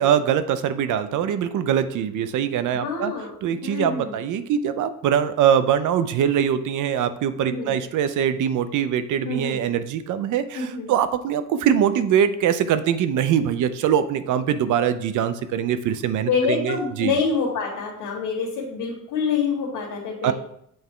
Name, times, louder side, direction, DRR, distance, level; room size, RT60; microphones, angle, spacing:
voice 1, 0.0-3.1 3.4-17.1 20.2-20.3, right 9 dB, 70° right, 12 dB, 0.5 m, -22 dB
voice 2, 2.7-3.3 3.6-4.1 7.4-7.7 9.2-9.6 10.5-10.9 16.3-20.3, left 5 dB, 80° left, -4 dB, 1.5 m, -26 dB
7.8 x 3.5 x 3.6 m, 0.72 s
cardioid pair, 165°, 31 cm